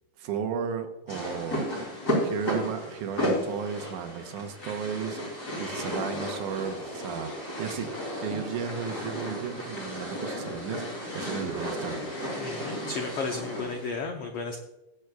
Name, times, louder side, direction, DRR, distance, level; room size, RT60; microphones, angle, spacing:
voice 1, 0.2-7.9 8.2-12.1, right 7 dB, 75° right, 6 dB, 2.3 m, -35 dB
sound 1, 1.1-13.9, equal, 30° left, 3.7 m, -33 dB
voice 2, 12.4-14.6, left 4 dB, 80° left, 3 dB, 1.3 m, -33 dB
20.0 x 7.9 x 2.3 m, 0.97 s
omnidirectional pair, 3.8 m